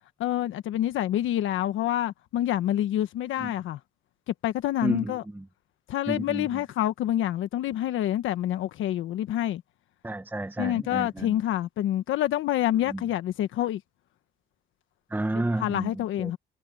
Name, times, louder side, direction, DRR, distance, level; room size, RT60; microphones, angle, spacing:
voice 1, 0.2-3.8 4.4-5.2 5.9-9.6 10.6-13.8 15.6-16.4, left 12 dB, 85° left, 1.3 m, -27 dB
voice 2, 4.8-5.4 6.1-6.5 10.0-11.3 12.9-13.0 15.1-15.9 16.2-16.3, right 2 dB, 10° right, 1.1 m, -31 dB
cardioid pair, 90°, 20 cm